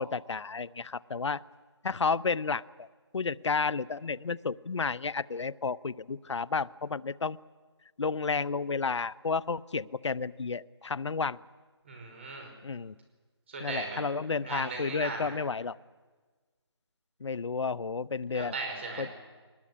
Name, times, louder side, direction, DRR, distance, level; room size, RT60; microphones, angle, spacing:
voice 1, 0.0-1.4 1.8-2.9 3.1-7.4 8.0-11.4 12.6-12.9 13.6-15.8 17.2-18.5 19.0-19.1, left 4 dB, 90° left, 18 dB, 0.7 m, -31 dB
voice 2, 11.8-12.5 13.5-14.0 14.4-15.3 18.3-19.1, right 3 dB, 25° right, 3 dB, 5.1 m, -37 dB
20.5 x 20.5 x 9.9 m, 1.4 s
hypercardioid pair, 175°, 15 cm